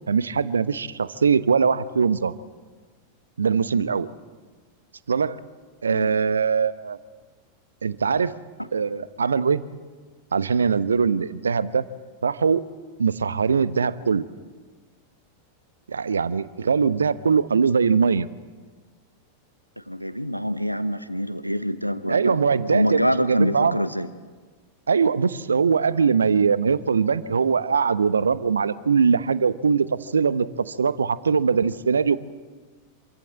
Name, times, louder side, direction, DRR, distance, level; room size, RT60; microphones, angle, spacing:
voice 1, 0.1-2.3 3.4-4.1 5.1-5.4 5.8-7.0 7.8-8.3 8.7-9.6 10.3-11.8 12.2-12.7 13.0-14.3 15.9-18.3 22.1-23.8 24.9-32.2, right 5 dB, 70° right, 16 dB, 0.9 m, -21 dB
voice 2, 19.9-22.4 22.7-24.1, equal, 90° right, 14 dB, 1.1 m, -25 dB
27.0 x 23.0 x 7.7 m, 1.4 s
figure-of-eight pair, 90°, 0 cm